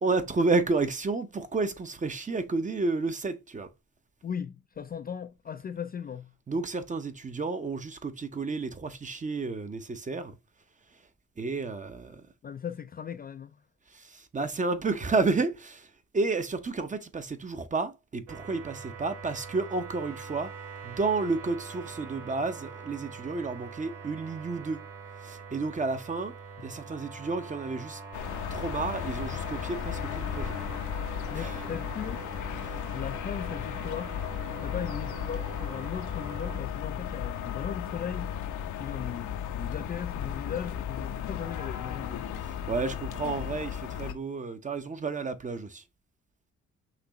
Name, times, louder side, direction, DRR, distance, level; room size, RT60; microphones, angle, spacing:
voice 1, 0.0-3.7 6.5-10.3 11.4-12.2 13.9-15.9 16.1-20.5 20.8-24.8 25.2-26.3 26.6-28.0 28.5-30.6 31.3-31.6 32.6-32.8 42.7-45.8, right 3 dB, 25° right, 0.7 m, -31 dB
voice 2, 4.2-6.3 12.4-13.6 26.6-26.7 31.3-32.2 32.9-34.2 34.5-38.3 38.8-42.2, left 8 dB, 30° left, 0.4 m, -38 dB
sound 1, 18.3-36.6, right 4 dB, 85° right, 2.0 m, -44 dB
sound 2, 28.1-44.1, left 9 dB, 80° left, 0.8 m, -35 dB
5.8 x 3.0 x 2.9 m
cardioid pair, 90°, 30 cm